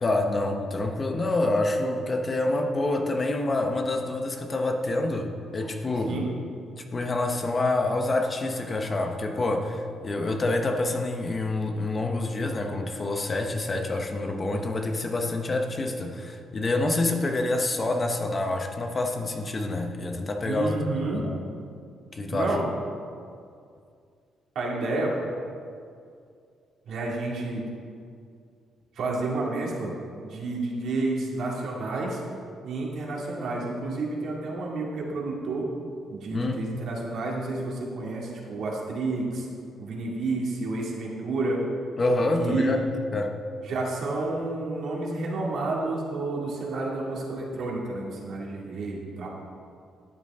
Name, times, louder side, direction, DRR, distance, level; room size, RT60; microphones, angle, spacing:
voice 1, 0.0-6.2 6.9-20.7 21.1-21.4 22.1-22.5 36.3-36.6 42.0-43.4, left 2 dB, 30° left, 4 dB, 1.0 m, -27 dB
voice 2, 20.4-21.2 22.3-22.6 24.6-25.2 26.9-27.6 29.0-29.9 30.2-32.2 32.6-35.7 36.1-39.5 39.8-41.6 42.4-42.8 43.7-49.3, right 2 dB, 70° right, -3 dB, 2.2 m, -30 dB
12.0 x 8.2 x 3.6 m, 2.3 s
cardioid pair, 90°, 0 cm